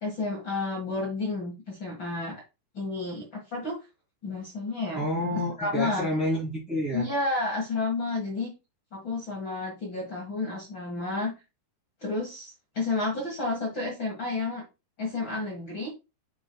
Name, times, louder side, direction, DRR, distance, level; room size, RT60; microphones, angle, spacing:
voice 1, 0.0-2.3 2.7-3.8 4.2-5.0 5.6-6.1 6.9-8.5 8.9-11.3 12.0-14.6 15.0-15.9, left 3 dB, 45° left, -1 dB, 1.5 m, -31 dB
voice 2, 4.9-7.0, left 1 dB, ahead, -8 dB, 2.3 m, -29 dB
8.3 x 6.2 x 2.3 m, 0.27 s
omnidirectional pair, 4.7 m